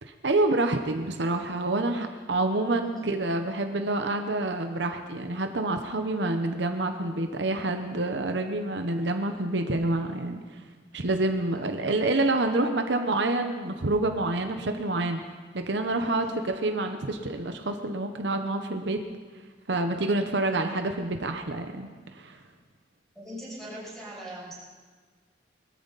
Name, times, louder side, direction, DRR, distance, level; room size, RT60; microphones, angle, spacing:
voice 1, 0.0-10.4 10.9-15.2 15.5-19.0 19.7-22.4, right 2 dB, 70° right, 6 dB, 1.0 m, -27 dB
voice 2, 23.1-24.5, right 1 dB, ahead, -6 dB, 6.6 m, -41 dB
22.0 x 13.5 x 4.1 m, 1.4 s
head